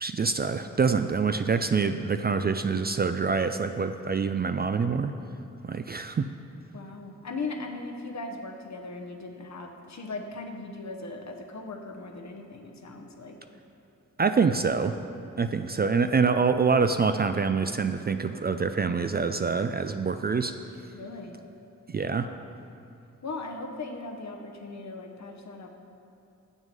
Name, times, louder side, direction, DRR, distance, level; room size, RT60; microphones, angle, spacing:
voice 1, 0.0-5.1 5.6-6.3 14.2-14.9 15.4-20.5 21.9-22.3, right 5 dB, 30° right, 8 dB, 0.4 m, -25 dB
voice 2, 6.7-13.4 20.9-21.4 23.2-25.7, left 3 dB, 55° left, 3 dB, 1.0 m, -38 dB
7.2 x 6.3 x 5.3 m, 2.7 s
cardioid pair, 40°, 33 cm